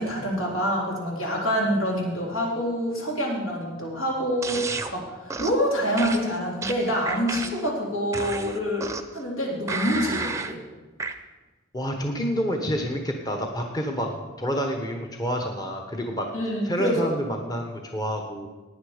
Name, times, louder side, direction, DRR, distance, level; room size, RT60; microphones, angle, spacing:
voice 1, 0.0-8.9 9.1-10.6 16.3-17.2, equal, 75° left, -2 dB, 3.6 m, -26 dB
sound 1, 4.4-4.9 5.3-5.6 6.0-7.7 8.1-9.2 9.7-10.5 11.0-11.1, right 3 dB, 15° right, 0.7 m, -32 dB
voice 2, 11.7-16.3 16.6-18.5, equal, 20° left, 3 dB, 1.1 m, -28 dB
17.0 x 9.5 x 5.0 m, 1.2 s
head